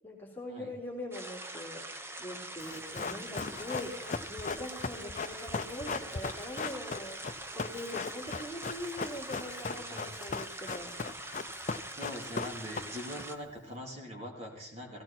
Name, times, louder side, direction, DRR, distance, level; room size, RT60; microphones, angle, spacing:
voice 1, 0.0-1.9 2.2-11.0, left 1 dB, 10° left, -1 dB, 3.3 m, -42 dB
sound 1, 1.1-13.3, right 1 dB, 15° right, 1.0 m, -44 dB
Run, 2.6-13.2 13.5-13.6, left 4 dB, 40° left, 0.5 m, -38 dB
voice 2, 6.0-6.5 9.8-10.1 11.9-15.0, equal, 35° right, 0 dB, 3.3 m, -43 dB
17.5 x 16.5 x 4.3 m, 0.77 s
head